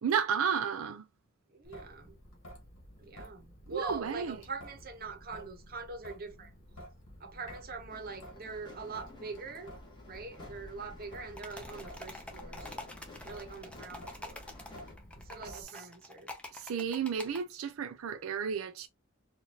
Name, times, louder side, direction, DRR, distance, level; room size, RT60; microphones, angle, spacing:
voice 1, 0.0-1.0 3.7-4.4 15.5-15.7 16.5-18.9, right 7 dB, 90° right, 0.4 m, -32 dB
voice 2, 1.5-2.2 3.0-6.5 7.2-9.7 10.1-12.9 13.2-14.4 15.2-16.3, right 4 dB, 45° right, 0.9 m, -43 dB
Traffic noise roadway noise / Drip / Trickle dribble, 1.6-15.6, equal, 70° left, 1.4 m, -51 dB
sound 1, 7.9-14.9, left 3 dB, 20° left, 1.4 m, -54 dB
sound 2, 11.4-17.4, left 1 dB, 5° left, 0.7 m, -47 dB
4.3 x 2.5 x 2.9 m
head